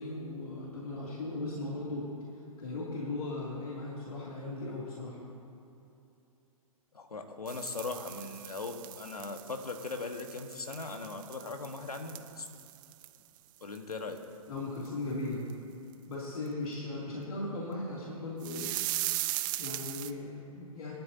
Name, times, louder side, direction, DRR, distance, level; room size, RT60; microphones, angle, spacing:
voice 1, 0.0-2.1 2.6-5.2 14.5-15.4 16.1-18.7 19.6-20.9, left 2 dB, 75° left, -5 dB, 2.8 m, -37 dB
voice 2, 6.9-12.4 13.6-14.2, left 3 dB, 90° left, 5 dB, 1.4 m, -39 dB
sound 1, 7.5-13.4 13.7-13.9 14.2-14.3 14.8-14.9 15.5-15.6 18.4-20.1, right 16 dB, 35° right, 0.5 m, -38 dB
21.0 x 12.0 x 2.8 m, 2.8 s
hypercardioid pair, 125°, 19 cm